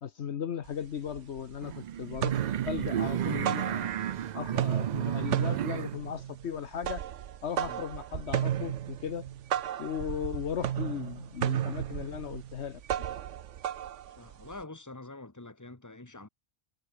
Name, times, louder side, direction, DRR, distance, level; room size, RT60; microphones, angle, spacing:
voice 1, 0.0-4.0 4.3-7.0 7.4-9.3 9.8-12.8, left 8 dB, 65° left, 1.2 m, -37 dB
sound 1, 0.7-0.8 1.1-1.7 2.0-4.2 4.5-14.6, right 11 dB, 80° right, 1.1 m, -34 dB
sound 2, 1.6-6.0, right 10 dB, 65° right, 0.4 m, -33 dB
voice 2, 14.2-16.3, left 2 dB, 15° left, 1.8 m, -46 dB
omnidirectional pair, 1.3 m